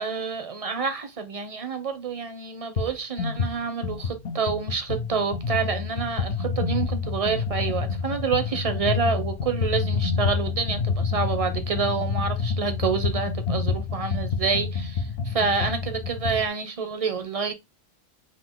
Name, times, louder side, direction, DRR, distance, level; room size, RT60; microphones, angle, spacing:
voice 1, 0.0-17.5, right 5 dB, 40° right, 0.7 m, -28 dB
sound 1, 2.8-2.9 3.2-16.5, left 5 dB, 70° left, 0.8 m, -28 dB
3.8 x 2.8 x 3.6 m
omnidirectional pair, 1.1 m